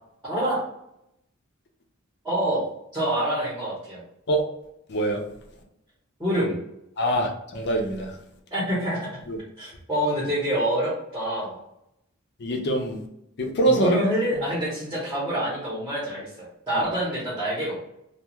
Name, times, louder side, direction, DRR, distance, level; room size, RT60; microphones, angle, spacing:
voice 1, 0.2-0.6 2.2-2.6 2.9-4.0 6.2-6.6 8.5-9.2 9.6-11.6 13.6-17.9, equal, 10° right, -7 dB, 0.9 m, -26 dB
voice 2, 4.9-5.2 7.0-8.1 9.3-9.4 12.4-13.0 13.4-14.0, right 1 dB, 50° left, 2 dB, 0.6 m, -24 dB
2.4 x 2.3 x 3.0 m, 0.81 s
head